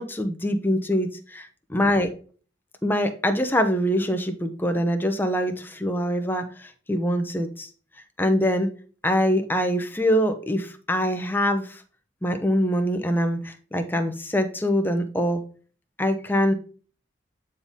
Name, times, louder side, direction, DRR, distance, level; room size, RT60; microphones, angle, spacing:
voice 1, 0.0-2.1 2.8-7.7 8.2-8.7 9.0-11.8 12.2-15.4 16.0-16.5, equal, 10° left, 0.7 m, -24 dB
8.6 x 4.1 x 3.6 m
head